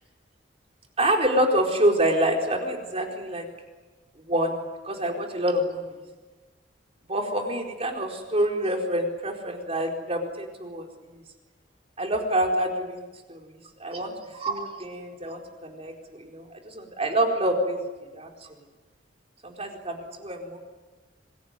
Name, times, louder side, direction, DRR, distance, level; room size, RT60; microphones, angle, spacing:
voice 1, 1.0-3.5 4.3-5.8 7.1-10.9 12.0-13.5 13.8-14.1 14.4-17.8 18.1-18.3 19.4-20.6, right 1 dB, 35° right, 1 dB, 4.4 m, -26 dB
25.5 x 22.0 x 9.7 m, 1.3 s
head